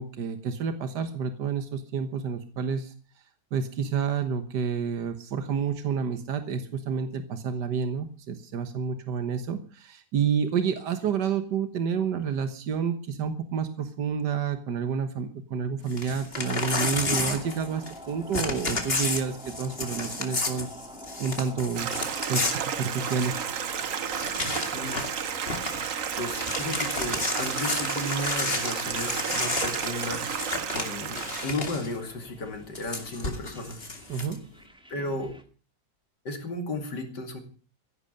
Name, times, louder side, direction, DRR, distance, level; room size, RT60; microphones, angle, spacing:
voice 1, 0.0-2.9 3.5-20.7 21.2-21.9 22.3-23.4 34.1-34.4, right 6 dB, 80° right, 9 dB, 1.9 m, -29 dB
Crumpling crinkling / Tearing, 15.9-18.0 18.3-23.4 23.8-23.9 24.1-25.2 25.5-25.8 26.2-31.9 32.7-34.3, left 3 dB, 35° left, 2.5 m, -32 dB
sound 1, 16.4-35.4, equal, 5° right, 1.6 m, -46 dB
Stream, 21.7-31.5, right 7 dB, 55° right, 1.3 m, -32 dB
voice 2, 24.7-25.0 26.1-33.8 34.9-35.4 36.2-37.4, left 2 dB, 85° left, 5 dB, 3.2 m, -34 dB
15.0 x 11.0 x 6.7 m, 0.39 s
omnidirectional pair, 1.8 m